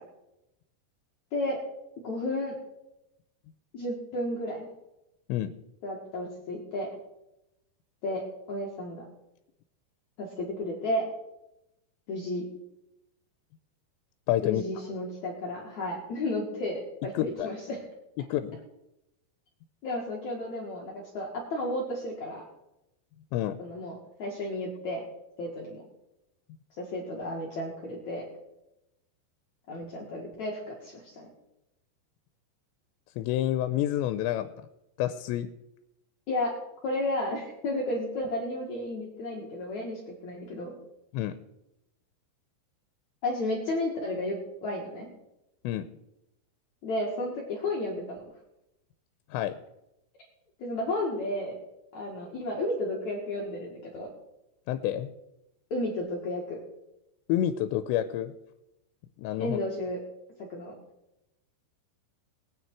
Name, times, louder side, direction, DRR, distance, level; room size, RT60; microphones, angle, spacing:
voice 1, 2.0-2.6 3.7-4.7 5.8-6.9 8.0-9.1 10.2-11.1 12.1-12.5 14.4-17.8 19.8-22.4 23.6-25.0 25.4-25.8 26.8-28.3 29.7-31.3 36.3-36.6 36.8-40.7 43.2-45.1 46.8-48.2 50.6-51.5 51.9-54.1 55.7-56.6 59.4-60.0 60.4-60.7, left 1 dB, 50° left, -2 dB, 2.6 m, -32 dB
voice 2, 14.3-14.6 17.1-17.5 18.2-18.6 23.3-23.6 33.2-34.5 35.0-35.5 41.1-41.4 45.6-45.9 49.3-49.6 54.7-55.1 57.3-58.3 59.2-59.6, left 12 dB, 90° left, 10 dB, 2.9 m, -28 dB
20.5 x 9.4 x 4.7 m, 0.90 s
omnidirectional pair, 5.0 m